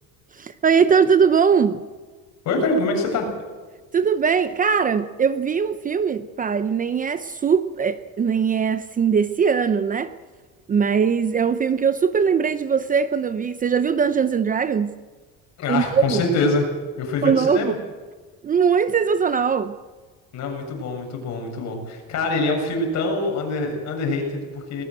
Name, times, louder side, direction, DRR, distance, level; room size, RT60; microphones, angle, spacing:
voice 1, 0.3-1.8 3.9-10.1 10.7-15.0 15.7-16.2 17.2-17.7 18.4-19.8, right 6 dB, 25° right, 12 dB, 0.7 m, -20 dB
voice 2, 2.4-3.3 15.6-16.6 17.0-17.7 20.3-24.8, left 3 dB, 50° left, 2 dB, 7.6 m, -24 dB
20.5 x 20.5 x 7.8 m, 1.4 s
cardioid pair, 155°, 34 cm